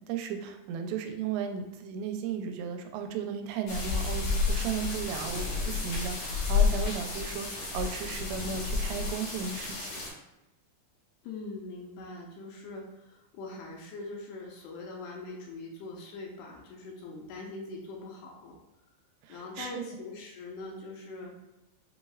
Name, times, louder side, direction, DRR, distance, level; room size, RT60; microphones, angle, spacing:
voice 1, 0.0-9.9 19.2-19.8, right 7 dB, 85° right, 5 dB, 2.8 m, -35 dB
sound 1, 3.7-10.1, left 5 dB, 65° left, 2.4 m, -30 dB
voice 2, 11.2-18.6 19.3-21.3, left 3 dB, 80° left, -1 dB, 2.5 m, -42 dB
7.0 x 3.1 x 2.4 m, 0.98 s
omnidirectional pair, 5.0 m